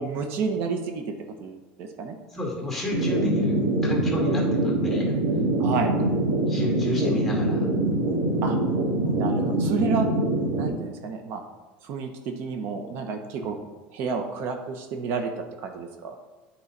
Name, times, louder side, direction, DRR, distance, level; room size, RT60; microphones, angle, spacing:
voice 1, 0.0-2.2 5.6-5.9 8.4-8.6 9.1-10.1 10.6-11.4 11.8-13.6 13.9-15.3 15.6-16.1, right 5 dB, 60° right, 5 dB, 0.8 m, -30 dB
voice 2, 2.3-3.6 3.8-5.1 6.5-7.7 9.0-9.2 13.4-13.5, left 2 dB, 5° left, -2 dB, 2.2 m, -30 dB
sound 1, 2.9-10.7, right 2 dB, 85° right, 2.5 m, -24 dB
8.9 x 4.7 x 4.1 m, 1.2 s
supercardioid pair, 125°, 4 cm